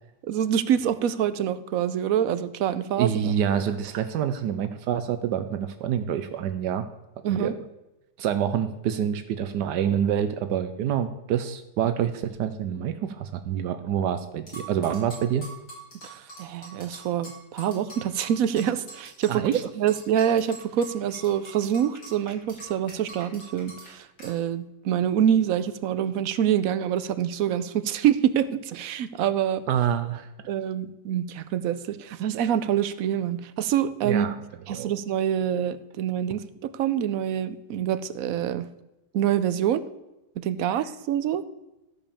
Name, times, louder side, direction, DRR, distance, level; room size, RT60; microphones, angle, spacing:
voice 1, 0.3-3.3 7.2-7.5 16.0-19.4 19.8-29.6 30.5-34.3 34.7-38.7 39.1-39.8 40.4-41.4, right 9 dB, 65° right, 14 dB, 0.9 m, -26 dB
voice 2, 3.0-6.8 7.3-7.5 8.2-15.4 19.3-19.6 29.7-30.3 34.0-34.4 34.7-34.9, right 9 dB, 80° right, 9 dB, 1.3 m, -27 dB
sound 1, 14.5-19.6 19.9-23.9 24.2-24.3, right 2 dB, 85° left, 4.7 m, -43 dB
13.0 x 5.3 x 6.9 m, 0.98 s
omnidirectional pair, 1.8 m